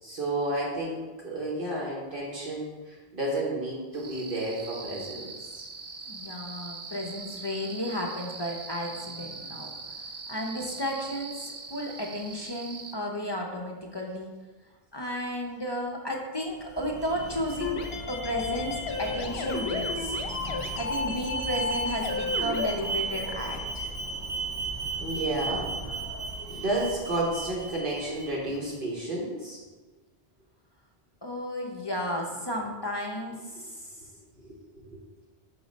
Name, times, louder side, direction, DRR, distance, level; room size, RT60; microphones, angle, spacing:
voice 1, 0.0-5.6 20.6-20.7 25.0-25.7 26.5-29.6 34.4-35.0, right 1 dB, 60° right, -5 dB, 1.3 m, -32 dB
sound 1, 3.9-13.0, right 4 dB, 45° right, 0.3 m, -41 dB
voice 2, 6.1-9.7 10.3-14.3 14.9-20.2 20.8-23.9 31.2-33.9, equal, 30° left, -1 dB, 0.6 m, -33 dB
Alarm, 16.5-28.6, right 2 dB, 5° left, 1.4 m, -35 dB
sound 2, 17.6-22.7, left 5 dB, 75° left, 0.9 m, -33 dB
6.3 x 3.1 x 5.1 m, 1.3 s
omnidirectional pair, 1.0 m